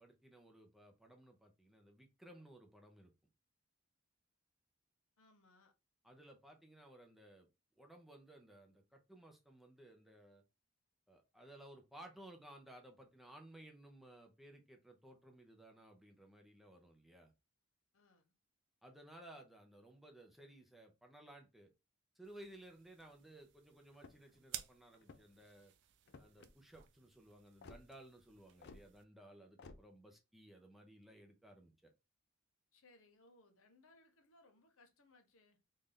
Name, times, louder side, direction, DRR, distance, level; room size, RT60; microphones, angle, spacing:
voice 1, 0.0-3.1 6.0-7.5 7.8-10.4 11.1-17.3 18.8-21.7 22.2-25.7 26.2-31.9, right 1 dB, ahead, 0.6 m, -58 dB
voice 2, 5.2-5.7 17.9-18.3 32.7-35.6, left 2 dB, 75° left, 0.9 m, -67 dB
sound 1, 22.2-29.0, right 11 dB, 60° right, 0.4 m, -55 dB
sound 2, 23.9-24.4 25.0-25.4 26.1-26.5 27.6-27.8 28.6-28.8 29.6-29.8, left 3 dB, 55° left, 0.4 m, -56 dB
3.2 x 2.6 x 3.7 m
head